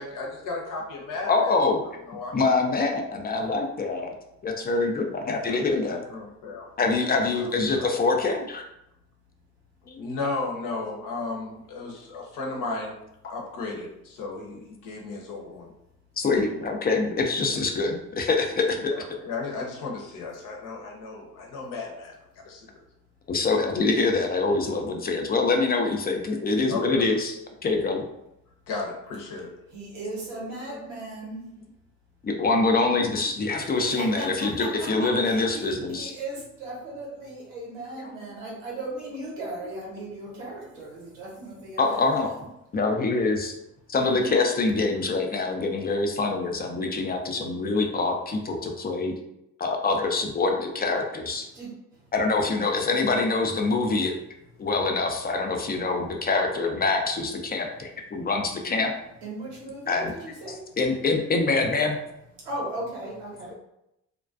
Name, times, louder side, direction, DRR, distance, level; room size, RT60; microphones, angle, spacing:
voice 1, 0.0-1.6 2.1-2.3 5.2-6.7 7.3-7.5 7.8-7.9 10.0-12.9 13.3-15.7 19.0-22.1 22.4-22.8 26.7-27.0 28.7-29.5, left 3 dB, 60° left, 0 dB, 0.8 m, -34 dB
voice 2, 1.2-1.8 2.3-4.1 4.4-6.0 6.8-8.6 9.9-10.1 13.8-13.9 16.2-18.9 23.3-28.0 32.2-36.1 41.8-42.3 42.7-43.5 43.9-49.1 49.6-51.5 52.1-54.1 54.6-58.9 59.9-60.1 60.8-62.0, left 3 dB, 25° left, 3 dB, 0.4 m, -25 dB
voice 3, 29.7-31.5 33.8-42.5 44.0-44.3 51.5-52.1 54.6-54.7 58.1-58.3 59.2-60.8 62.4-63.5, right 2 dB, 90° right, -4 dB, 0.9 m, -37 dB
2.3 x 2.2 x 2.4 m, 0.84 s
hypercardioid pair, 55°, 36 cm